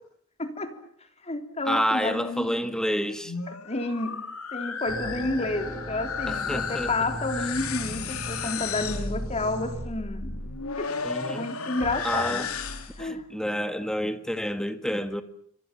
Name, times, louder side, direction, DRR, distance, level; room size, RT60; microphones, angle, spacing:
voice 1, 0.4-0.7 1.2-2.7 3.7-4.2 4.5-10.3 10.8-10.9 11.3-12.4 13.0-13.2, left 2 dB, 30° left, 3.6 m, -30 dB
voice 2, 1.6-3.3 6.3-7.1 11.0-11.5 12.0-12.5 13.0-15.2, equal, 5° left, 1.9 m, -29 dB
sound 1, 3.1-13.1, left 5 dB, 90° left, 3.0 m, -34 dB
sound 2, 4.9-9.9, right 1 dB, 15° right, 7.5 m, -38 dB
27.5 x 25.5 x 7.5 m
head